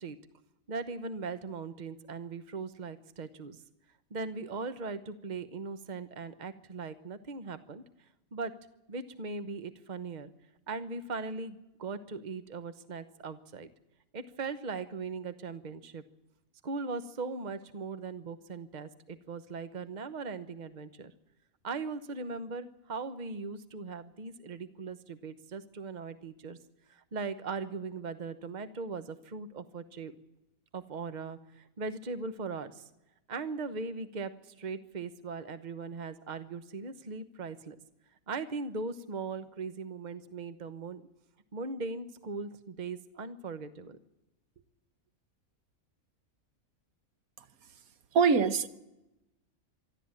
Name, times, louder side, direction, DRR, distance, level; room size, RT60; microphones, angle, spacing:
voice 1, 0.7-3.6 4.1-7.8 8.3-8.5 8.9-10.3 10.7-13.7 14.1-16.0 16.6-21.1 21.6-26.6 26.9-30.1 30.7-32.8 33.3-37.8 38.3-41.0 41.5-44.0, right 4 dB, 35° right, 12 dB, 1.1 m, -39 dB
voice 2, 48.1-48.7, right 5 dB, 85° right, 12 dB, 1.5 m, -23 dB
23.5 x 13.0 x 8.9 m, 0.96 s
omnidirectional pair, 1.5 m